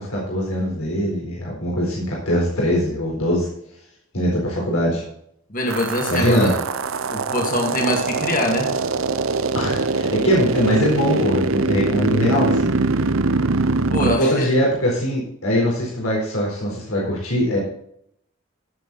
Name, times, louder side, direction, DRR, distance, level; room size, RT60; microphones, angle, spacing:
voice 1, 0.0-3.5 4.1-5.0 6.1-6.5 9.5-12.8 14.2-17.6, equal, 85° left, -3 dB, 4.1 m, -21 dB
voice 2, 5.5-6.5 7.1-8.7 13.9-14.5, left 1 dB, 40° left, 1 dB, 2.2 m, -23 dB
sound 1, 5.7-14.2, right 3 dB, 70° right, 0.7 m, -22 dB
15.0 x 7.5 x 4.2 m, 0.70 s
head